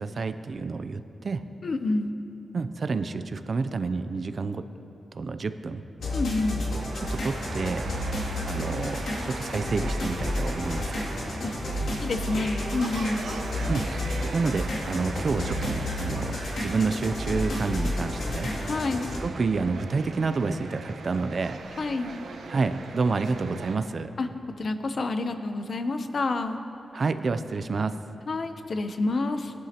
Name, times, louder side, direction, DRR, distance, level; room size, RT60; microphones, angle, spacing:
voice 1, 0.0-1.4 2.5-4.6 5.1-5.8 6.9-7.9 8.4-11.0 13.7-13.8 14.3-18.5 19.2-21.6 22.5-24.1 26.9-28.0, right 4 dB, 40° right, 10 dB, 0.4 m, -29 dB
voice 2, 1.6-2.1 6.1-6.6 11.4-11.5 12.0-13.2 18.6-19.1 21.8-22.1 24.2-24.3 24.6-26.6 28.3-29.5, left 3 dB, 45° left, 8 dB, 0.6 m, -28 dB
sound 1, 6.0-19.2, left 1 dB, 70° left, 2.5 m, -31 dB
sound 2, 6.5-23.8, right 4 dB, 85° right, 0.9 m, -41 dB
20.5 x 11.5 x 2.9 m, 2.9 s
wide cardioid pair, 165°, 0 cm